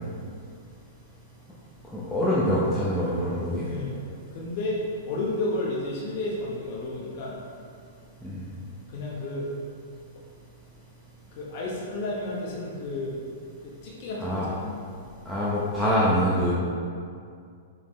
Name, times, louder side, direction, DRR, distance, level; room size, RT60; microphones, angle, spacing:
voice 1, 1.9-3.6 8.2-8.5 14.2-14.5 15.3-16.5, equal, ahead, -10 dB, 1.0 m, -25 dB
voice 2, 3.7-4.0 4.3-7.3 8.9-9.5 11.3-13.2 13.6-14.8, left 2 dB, 50° left, -5 dB, 1.2 m, -32 dB
7.1 x 4.2 x 3.2 m, 2.3 s
hypercardioid pair, 130°, 0 cm